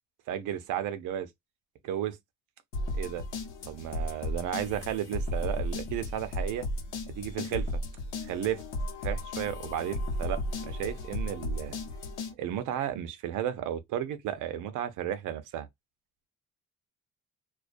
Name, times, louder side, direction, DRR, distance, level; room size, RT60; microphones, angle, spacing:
voice 1, 0.3-1.3 1.8-2.2 3.0-3.2 3.7-6.7 7.1-7.7 8.2-8.6 9.0-11.8 12.4-15.7, right 10 dB, 90° right, 0.6 m, -33 dB
sound 1, 2.7-12.3, left 1 dB, 85° left, 0.9 m, -34 dB
2.3 x 2.2 x 2.4 m
cardioid pair, 90°, 30 cm